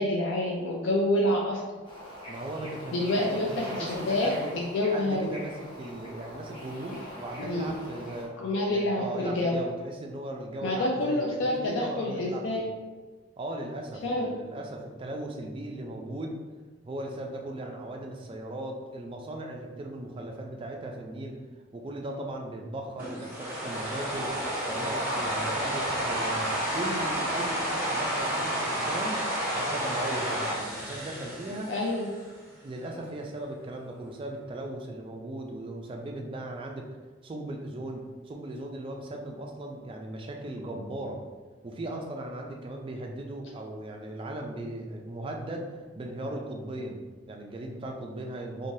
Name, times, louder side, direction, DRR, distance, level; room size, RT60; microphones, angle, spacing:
voice 1, 0.0-1.6 2.9-5.3 7.4-7.8 8.4-9.6 10.6-12.6 14.0-14.3 31.7-32.1, left 1 dB, 65° left, -3 dB, 0.4 m, -27 dB
Bird / Ocean, 1.8-8.3, left 1 dB, 25° left, 0.7 m, -43 dB
voice 2, 2.3-4.5 4.9-8.4 8.7-12.6 13.4-16.3 16.8-21.4 21.7-24.3 24.7-29.2 29.5-31.7 32.6-36.9 37.2-41.2 41.6-47.0 47.3-48.7, right 1 dB, 25° right, 1 dB, 0.3 m, -37 dB
sound 1, 23.0-32.2, right 1 dB, 10° right, 0.9 m, -30 dB
3.1 x 2.2 x 2.6 m, 1.4 s
head